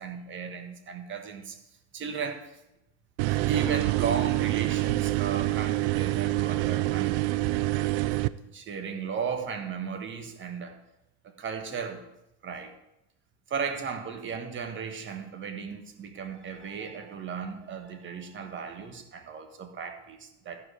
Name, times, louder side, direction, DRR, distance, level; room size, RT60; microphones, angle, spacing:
voice 1, 0.0-1.6 1.9-2.6 3.3-7.3 8.5-10.7 11.4-12.0 12.4-12.7 13.5-20.6, right 6 dB, 30° right, 5 dB, 1.4 m, -35 dB
sound 1, 3.2-8.3, right 18 dB, 60° right, 0.5 m, -26 dB
13.5 x 4.7 x 5.0 m, 0.90 s
supercardioid pair, 125°, 39 cm